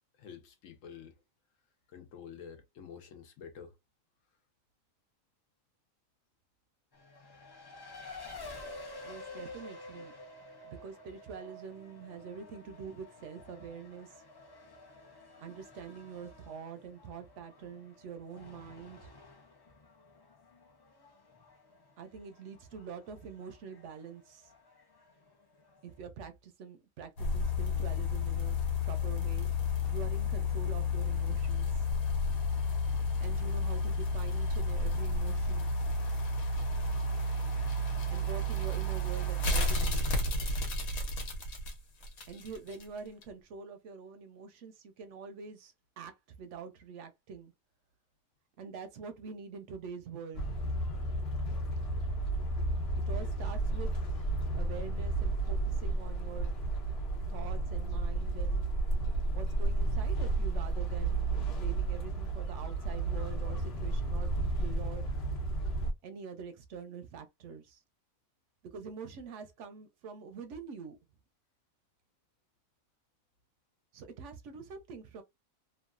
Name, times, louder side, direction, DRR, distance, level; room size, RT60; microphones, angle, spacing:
voice 1, 0.2-1.2 1.9-3.8 7.2-8.1, left 7 dB, 70° left, 1.1 m, -50 dB
Race car auto racing, 6.9-26.1, left 2 dB, 30° left, 0.4 m, -51 dB
voice 2, 9.0-10.1 10.6-14.2 15.4-19.1 22.0-24.5 25.8-29.5 29.9-31.8 33.2-35.7 38.1-40.1 42.3-47.5 48.6-50.5 53.1-56.5 57.3-58.6 59.3-65.1 66.0-67.8 68.6-71.0 73.9-75.2, right 6 dB, 65° right, 0.8 m, -45 dB
sound 1, 27.2-42.8 43.2-43.3, left 2 dB, 90° left, 1.4 m, -31 dB
sound 2, 50.3-65.9, right 2 dB, 55° left, 0.9 m, -32 dB
3.0 x 2.3 x 2.3 m
omnidirectional pair, 1.4 m